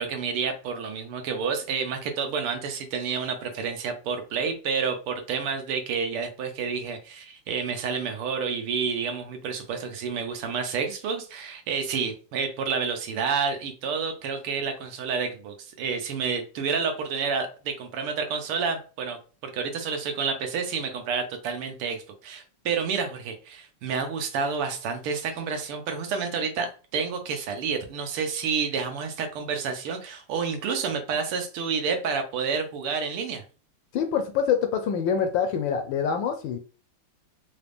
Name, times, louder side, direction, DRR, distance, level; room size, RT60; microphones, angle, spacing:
voice 1, 0.0-19.2 19.4-33.4, right 5 dB, 80° right, 6 dB, 1.8 m, -29 dB
voice 2, 33.9-36.6, left 7 dB, 75° left, 7 dB, 1.1 m, -25 dB
4.8 x 2.6 x 3.4 m, 0.36 s
omnidirectional pair, 2.4 m